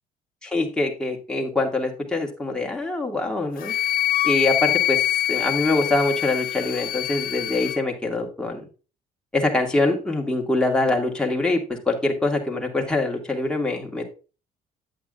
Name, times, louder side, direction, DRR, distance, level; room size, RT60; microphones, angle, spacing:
voice 1, 0.4-3.7 4.2-5.0 5.3-8.7 9.3-14.1, left 2 dB, 5° left, 0 dB, 2.0 m, -24 dB
Wind instrument woodwind instrument, 3.6-7.8, left 13 dB, 60° left, 0.6 m, -24 dB
8.7 x 8.3 x 2.5 m, 0.34 s
cardioid pair, 110°, 17 cm